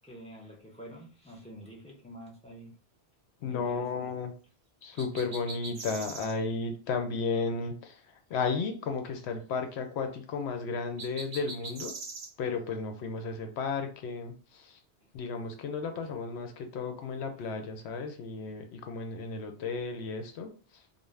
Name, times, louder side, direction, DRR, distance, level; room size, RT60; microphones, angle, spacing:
voice 1, 0.0-2.8 3.5-4.1 15.0-15.1 16.0-16.1, equal, 10° left, -3 dB, 0.5 m, -47 dB
voice 2, 3.4-4.3 4.8-8.0 8.3-11.9 12.4-14.7 15.1-20.5, left 4 dB, 80° left, 6 dB, 0.8 m, -34 dB
sound 1, 5.0-6.3 11.0-12.3, right 3 dB, 55° right, 0.7 m, -42 dB
2.5 x 2.1 x 3.2 m, 0.37 s
omnidirectional pair, 1.1 m